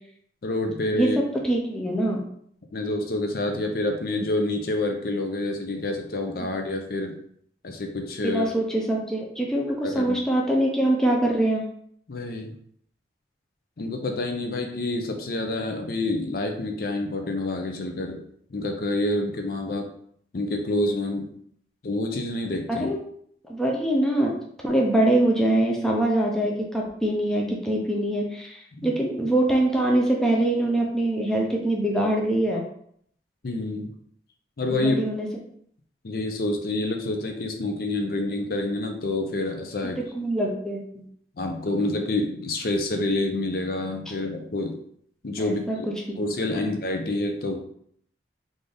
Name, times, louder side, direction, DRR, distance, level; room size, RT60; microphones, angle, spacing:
voice 1, 0.4-1.2 2.7-7.1 7.6-8.5 9.8-10.2 12.1-12.5 13.8-18.2 18.5-19.9 20.3-21.3 21.8-22.9 28.8-28.9 33.4-33.9 34.6-35.0 36.0-40.0 41.4-44.8 45.2-45.9 46.2-47.6, left 2 dB, 55° left, 4 dB, 0.5 m, -27 dB
voice 2, 0.9-2.2 8.2-11.7 22.7-23.0 23.5-24.3 24.6-32.6 34.7-35.3 39.8-41.0 45.4-45.8 46.1-46.2 46.5-46.7, right 1 dB, 5° left, -2 dB, 0.5 m, -24 dB
3.9 x 2.5 x 3.3 m, 0.66 s
head